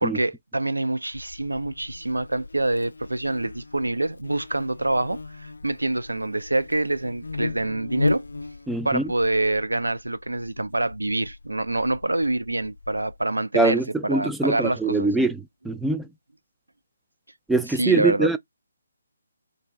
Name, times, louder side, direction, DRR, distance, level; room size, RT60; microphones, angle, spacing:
voice 1, 0.0-8.2 8.8-15.1 17.8-18.3, right 2 dB, 80° right, 0.4 m, -26 dB
Buzz, 1.1-13.2, left 3 dB, 70° left, 0.4 m, -36 dB
voice 2, 8.7-9.0 13.5-16.0 17.5-18.4, right 3 dB, 5° right, 0.3 m, -23 dB
3.0 x 2.6 x 3.4 m
figure-of-eight pair, 145°, 0 cm